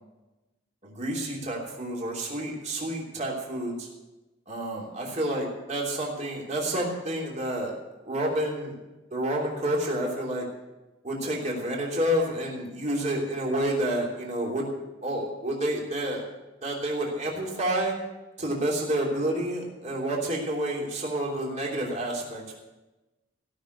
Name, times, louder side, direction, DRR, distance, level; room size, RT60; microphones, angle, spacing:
voice 1, 0.8-3.9 4.5-7.7 8.0-8.7 9.1-10.4 11.0-14.7 15.0-16.2 16.6-17.9 18.4-22.4, right 1 dB, 40° right, -3 dB, 3.2 m, -29 dB
16.5 x 6.4 x 9.4 m, 1.1 s
head